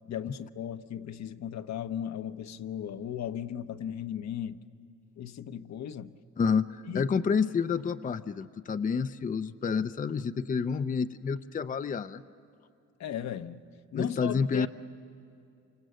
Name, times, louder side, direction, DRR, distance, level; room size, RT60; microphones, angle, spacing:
voice 1, 0.1-4.6 5.2-6.1 6.8-7.1 13.0-13.6 13.9-14.7, left 9 dB, 65° left, 10 dB, 0.9 m, -36 dB
voice 2, 6.4-12.2 13.9-14.7, left 5 dB, 25° left, 11 dB, 0.6 m, -29 dB
27.5 x 25.5 x 7.8 m, 2.5 s
cardioid pair, 90°, 30 cm